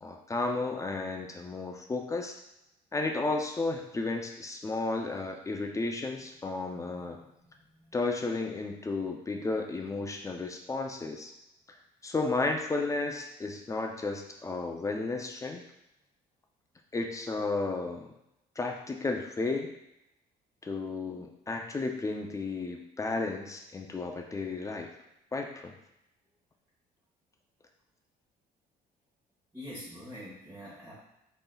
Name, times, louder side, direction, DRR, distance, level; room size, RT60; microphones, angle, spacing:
voice 1, 0.0-2.4 2.9-7.2 7.9-11.3 12.0-15.6 16.9-18.1 18.6-19.7 20.6-24.9 25.3-25.8, left 3 dB, 20° left, 3 dB, 0.4 m, -33 dB
voice 2, 29.5-31.0, equal, 10° right, -10 dB, 1.2 m, -44 dB
3.8 x 3.8 x 2.3 m, 0.84 s
cardioid pair, 110°, 17 cm